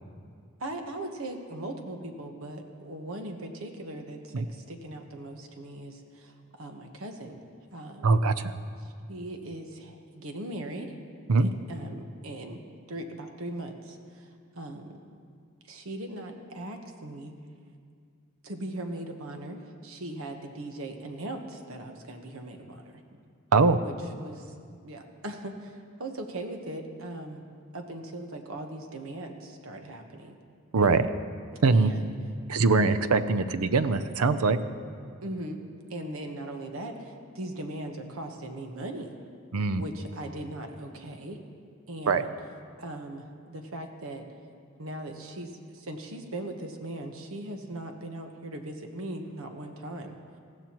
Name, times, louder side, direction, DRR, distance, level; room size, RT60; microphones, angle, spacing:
voice 1, 0.6-7.4 7.7-8.1 8.8-11.0 11.4-12.6 12.9-15.0 15.6-17.3 18.4-23.0 23.7-24.5 24.8-27.4 27.7-30.4 31.7-32.1 35.2-35.6 35.9-39.1 39.7-41.4 41.9-42.3 42.8-44.2 44.8-50.1, right 1 dB, 70° right, 4 dB, 1.2 m, -39 dB
voice 2, 8.0-8.5 11.3-11.5 23.5-23.8 30.7-31.1 31.6-31.9 32.5-34.6 39.5-39.8 42.1-42.2, right 4 dB, 90° right, 12 dB, 0.6 m, -22 dB
19.5 x 14.5 x 3.0 m, 2.2 s
head